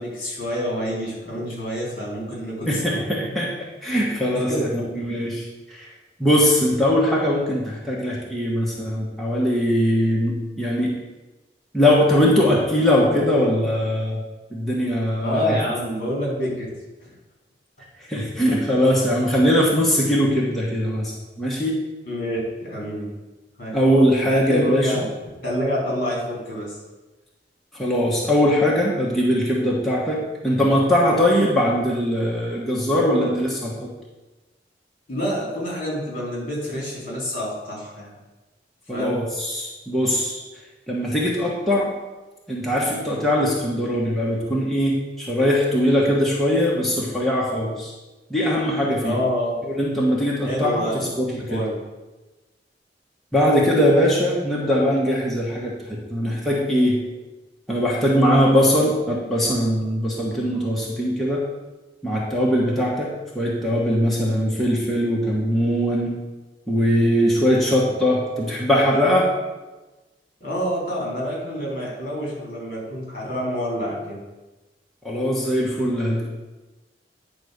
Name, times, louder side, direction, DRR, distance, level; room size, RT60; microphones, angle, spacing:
voice 1, 0.0-3.0 4.3-4.6 15.2-16.7 22.0-23.1 23.6-23.7 24.3-25.0 25.4-26.8 35.1-38.1 38.9-39.2 49.0-49.6 50.4-51.1 51.5-51.7 70.4-74.2, equal, 55° left, -3 dB, 3.3 m, -27 dB
voice 2, 2.6-3.5 3.8-5.9 6.2-10.9 11.7-14.2 14.5-15.6 18.0-21.1 21.4-21.8 23.7-24.9 27.7-33.9 38.9-40.4 40.9-41.9 42.5-47.9 48.3-49.2 49.6-50.9 51.2-51.6 53.3-57.0 57.7-61.4 62.0-66.1 66.7-69.3 75.0-76.3, equal, ahead, -5 dB, 1.2 m, -21 dB
9.4 x 4.0 x 6.5 m, 1.1 s
head